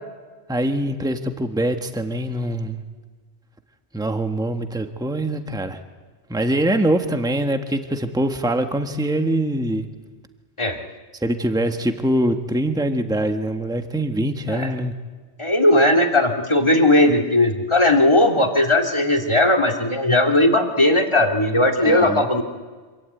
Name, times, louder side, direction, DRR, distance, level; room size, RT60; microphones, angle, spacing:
voice 1, 0.5-2.8 3.9-5.8 6.3-9.9 11.2-14.9 21.8-22.3, right 1 dB, 5° right, 6 dB, 1.4 m, -23 dB
voice 2, 15.4-22.4, left 1 dB, 25° left, 3 dB, 2.5 m, -17 dB
26.5 x 23.5 x 9.3 m, 1.4 s
omnidirectional pair, 1.2 m